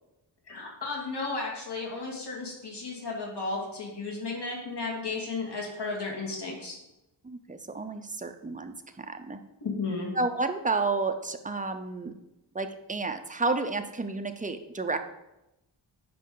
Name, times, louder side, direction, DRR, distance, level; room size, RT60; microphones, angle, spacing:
voice 1, 0.5-6.8 9.6-10.1, left 3 dB, 65° left, -2 dB, 2.2 m, -34 dB
voice 2, 7.2-9.4 10.2-12.1 12.5-15.0, right 3 dB, 20° right, 7 dB, 0.6 m, -31 dB
9.3 x 5.1 x 3.8 m, 0.93 s
wide cardioid pair, 105°, 44 cm